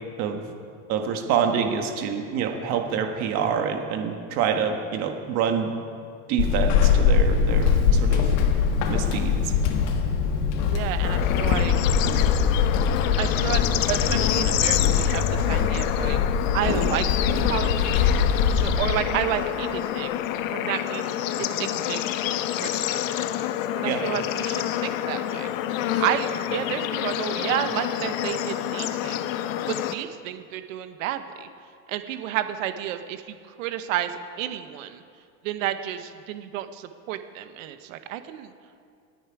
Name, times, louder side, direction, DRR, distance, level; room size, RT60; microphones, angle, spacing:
voice 1, 0.9-5.7 6.3-8.3 8.9-9.5 23.8-24.0, right 7 dB, 45° right, 4 dB, 1.6 m, -26 dB
Walk footsteps / Squeak, 6.4-19.0, left 6 dB, 65° left, 1.8 m, -22 dB
voice 2, 10.6-11.7 13.2-16.2 16.5-18.2 18.5-20.1 20.5-23.0 23.8-25.5 26.0-31.5 31.9-35.0 35.4-38.5, right 11 dB, 85° right, 9 dB, 1.2 m, -31 dB
Bird / Insect / Frog, 11.0-29.9, left 11 dB, 85° left, 1.0 m, -28 dB
28.0 x 9.5 x 4.8 m, 2.3 s
cardioid pair, 170°, 38 cm